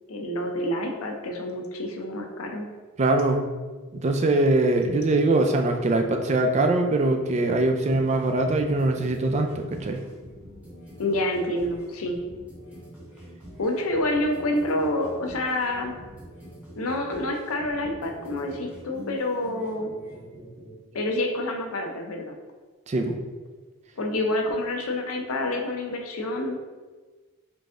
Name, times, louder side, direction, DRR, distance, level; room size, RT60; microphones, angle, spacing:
voice 1, 0.1-2.7 11.0-12.2 13.6-15.9 16.8-19.9 20.9-22.4 24.0-26.6, left 1 dB, 75° left, 2 dB, 0.7 m, -28 dB
voice 2, 3.0-3.4 3.9-10.0 22.9-23.2, right 2 dB, 30° right, 4 dB, 0.4 m, -22 dB
sound 1, 7.9-20.8, equal, 5° right, 1.3 m, -45 dB
4.0 x 3.3 x 3.7 m, 1.3 s
head